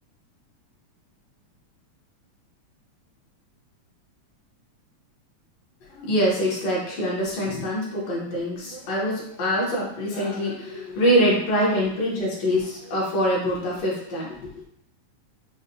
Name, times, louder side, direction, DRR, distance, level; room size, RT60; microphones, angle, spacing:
voice 1, 5.9-14.6, equal, 65° left, -4 dB, 2.1 m, -24 dB
6.5 x 2.3 x 2.7 m, 0.70 s
omnidirectional pair, 3.3 m